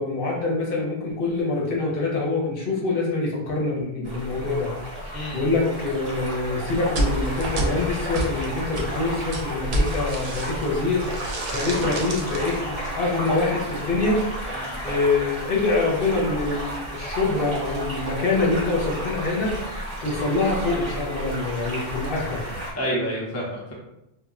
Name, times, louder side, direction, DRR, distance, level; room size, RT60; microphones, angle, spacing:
voice 1, 0.0-4.7 5.0-12.6 12.9-22.6, left 3 dB, 65° left, -2 dB, 0.8 m, -25 dB
sound 1, 4.0-22.7, equal, 40° right, 0.8 m, -32 dB
voice 2, 5.1-5.5 12.6-12.8 14.6-14.8 22.8-23.7, equal, 20° left, -4 dB, 0.5 m, -29 dB
sound 2, 6.9-10.7 11.0-12.5, right 1 dB, 80° right, 0.8 m, -29 dB
2.2 x 2.0 x 3.5 m, 0.87 s
omnidirectional pair, 1.0 m